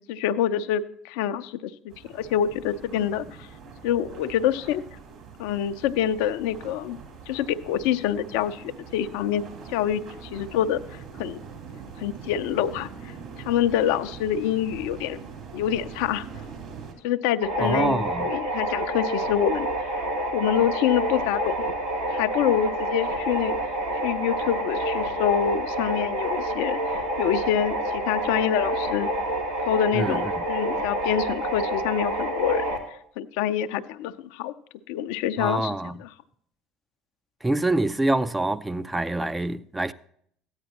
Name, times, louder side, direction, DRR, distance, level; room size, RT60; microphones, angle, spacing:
voice 1, 0.1-3.5 3.8-4.8 5.4-7.0 7.3-9.4 9.7-11.4 12.0-13.1 13.4-15.2 15.5-16.3 17.0-20.0 20.3-21.5 22.1-23.6 24.0-29.1 29.7-32.7 33.2-34.5 34.9-35.7 36.0-36.1, left 10 dB, 70° left, 0.4 m, -26 dB
sound 1, 1.9-16.9, right 5 dB, 55° right, 3.3 m, -43 dB
sound 2, 17.4-32.8, right 1 dB, 85° right, 1.8 m, -28 dB
voice 2, 17.6-18.3 29.9-30.3 35.4-36.0 37.4-39.9, right 2 dB, 15° right, 0.4 m, -26 dB
14.0 x 9.5 x 2.9 m
hypercardioid pair, 65°, 0 cm